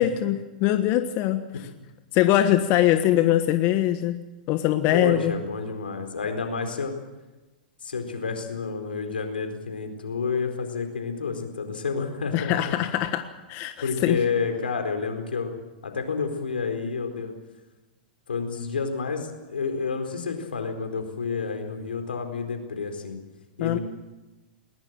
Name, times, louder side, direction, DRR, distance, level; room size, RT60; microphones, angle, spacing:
voice 1, 0.0-1.5 2.1-5.3 12.3-14.2 23.6-23.8, left 13 dB, 45° left, 9 dB, 1.3 m, -22 dB
voice 2, 4.9-6.9 7.8-12.7 13.8-15.6 15.8-17.3 18.3-23.2 23.6-23.8, left 5 dB, 90° left, 6 dB, 4.3 m, -29 dB
21.0 x 20.0 x 7.6 m, 1.1 s
hypercardioid pair, 115°, 5 cm